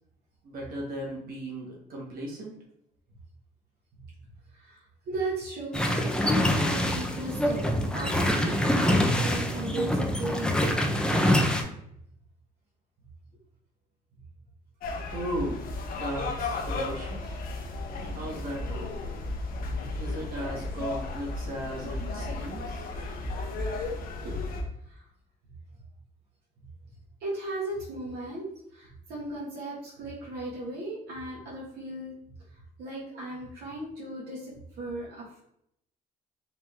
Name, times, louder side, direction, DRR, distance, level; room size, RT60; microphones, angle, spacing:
voice 1, 0.4-2.5 15.1-17.4 18.1-18.9 20.0-22.8, right 1 dB, 60° right, -3 dB, 1.7 m, -36 dB
voice 2, 4.5-11.1 24.1-25.0 27.2-32.1 32.8-35.4, right 1 dB, 75° right, -5 dB, 1.5 m, -36 dB
sound 1, 5.7-11.6, left 1 dB, 5° left, 0.6 m, -25 dB
sound 2, 14.8-24.6, left 2 dB, 60° left, 0.9 m, -34 dB
4.5 x 2.8 x 3.6 m, 0.74 s
cardioid pair, 110°, 17 cm